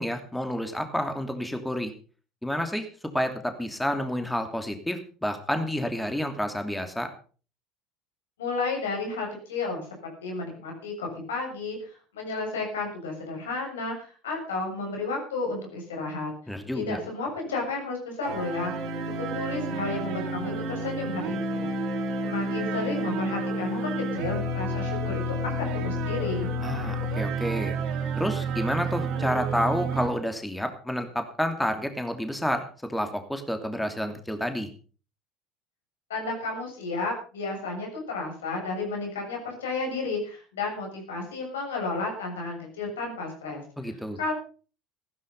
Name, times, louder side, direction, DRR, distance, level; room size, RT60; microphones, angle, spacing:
voice 1, 0.0-1.9 2.4-2.9 3.1-7.1 16.5-17.0 26.6-27.7 28.2-34.7 43.8-44.2, equal, 5° left, 7 dB, 2.9 m, -29 dB
voice 2, 8.4-9.9 10.2-16.3 16.7-18.9 19.2-21.7 22.2-26.5 36.1-43.6 44.2-44.3, left 3 dB, 85° left, 1 dB, 7.1 m, -32 dB
sound 1, 18.2-30.1, right 1 dB, 60° right, 4.0 m, -30 dB
15.5 x 13.0 x 5.5 m, 0.39 s
hypercardioid pair, 70°, 0 cm